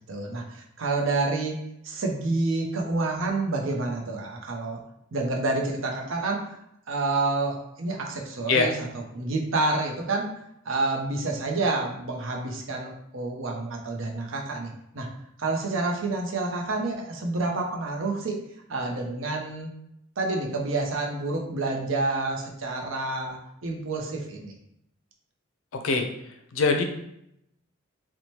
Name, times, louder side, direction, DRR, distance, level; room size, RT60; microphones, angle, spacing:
voice 1, 0.1-4.8 5.1-6.5 6.9-8.9 9.1-10.3 10.6-14.7 14.9-15.1 15.4-18.4 18.7-19.7 20.2-24.5, right 3 dB, 70° right, 1 dB, 0.6 m, -28 dB
voice 2, 26.5-26.8, left 4 dB, 75° left, 4 dB, 0.4 m, -21 dB
2.8 x 2.1 x 3.0 m, 0.78 s
head